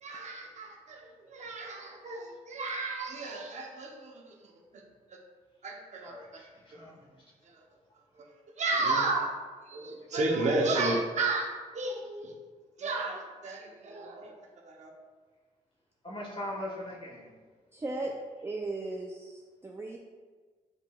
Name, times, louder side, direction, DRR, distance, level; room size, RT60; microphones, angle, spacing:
voice 1, 0.0-4.8 5.1-5.2 5.6-6.4 7.4-7.6 8.1-9.3 9.7-12.4 12.8-14.3 14.6-14.9, right 2 dB, 55° right, 0 dB, 0.8 m, -33 dB
voice 2, 6.0-7.0 10.4-10.5 16.0-17.3, left 1 dB, 40° left, -2 dB, 1.3 m, -40 dB
voice 3, 17.7-18.1 18.4-20.0, right 2 dB, 15° right, -1 dB, 0.4 m, -36 dB
7.8 x 3.0 x 2.3 m, 1.4 s
cardioid pair, 120°, 14 cm